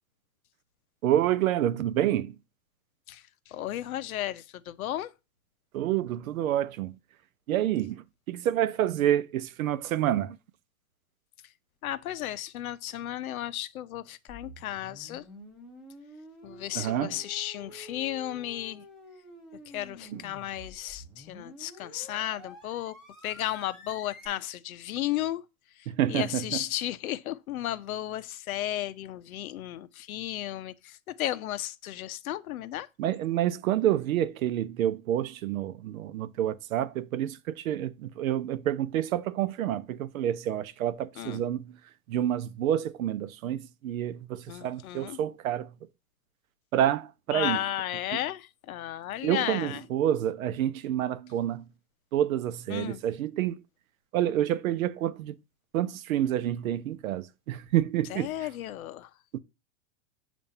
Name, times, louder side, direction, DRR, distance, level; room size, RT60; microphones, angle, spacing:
voice 1, 1.0-2.4 5.7-7.0 7.5-10.4 16.7-17.2 20.1-20.2 25.9-26.4 33.0-41.7 42.1-45.7 46.7-47.6 49.2-51.7 52.1-53.6 54.1-55.3 55.7-58.3 59.3-59.4, right 11 dB, 75° right, 0.7 m, -28 dB
voice 2, 3.1-5.1 11.4-11.5 11.8-15.3 16.4-18.9 19.7-23.0 23.2-32.9 41.2-41.4 44.5-45.2 47.3-49.8 52.7-53.0 58.1-59.2, left 13 dB, 85° left, 0.7 m, -34 dB
sound 1, 14.3-24.3, left 1 dB, ahead, 1.0 m, -49 dB
7.2 x 2.6 x 5.4 m
supercardioid pair, 165°, 41 cm